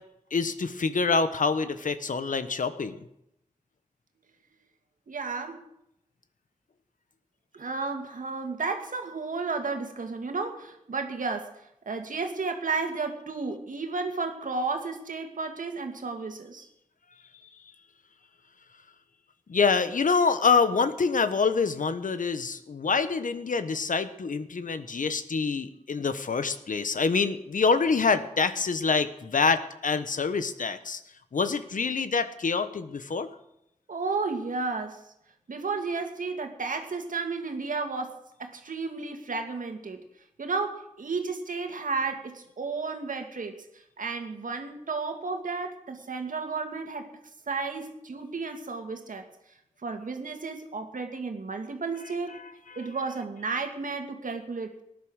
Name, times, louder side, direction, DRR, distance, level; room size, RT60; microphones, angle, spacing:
voice 1, 0.3-3.0 19.5-31.0 31.3-33.3, left 5 dB, 80° left, 11 dB, 1.1 m, -26 dB
voice 2, 5.1-5.6 7.5-11.5 11.9-16.7 33.9-35.0 35.5-40.0 40.4-47.1 47.5-49.2 49.8-52.4 52.8-54.8, right 4 dB, 85° right, 5 dB, 2.1 m, -33 dB
18.5 x 11.0 x 6.4 m, 0.81 s
wide cardioid pair, 85°, 13 cm